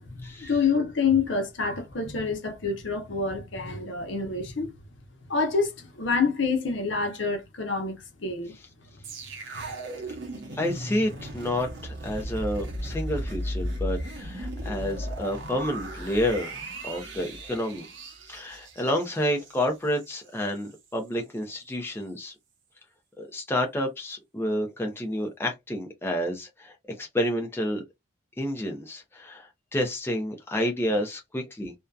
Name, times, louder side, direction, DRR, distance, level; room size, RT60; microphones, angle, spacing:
voice 1, 0.0-4.7 5.3-8.5 9.5-9.7, left 4 dB, 70° left, 0.7 m, -27 dB
sound 1, 9.0-20.2 20.6-20.7, right 1 dB, 65° right, 0.8 m, -36 dB
voice 2, 10.5-16.6 16.8-17.9 18.3-22.3 23.2-27.8 28.4-31.7, left 1 dB, 10° left, 0.5 m, -29 dB
2.6 x 2.2 x 2.3 m
head